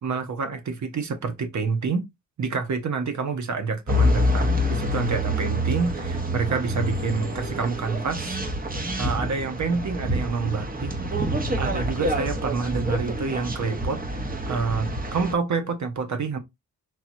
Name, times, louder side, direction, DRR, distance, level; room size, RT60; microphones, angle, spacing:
voice 1, 0.0-2.0 2.4-8.4 9.0-10.9 11.6-14.0 14.5-16.4, right 4 dB, 55° right, 1.1 m, -28 dB
sound 1, 3.9-15.3, equal, 25° right, 1.1 m, -27 dB
3.8 x 2.9 x 2.7 m
supercardioid pair, 45°, 35 cm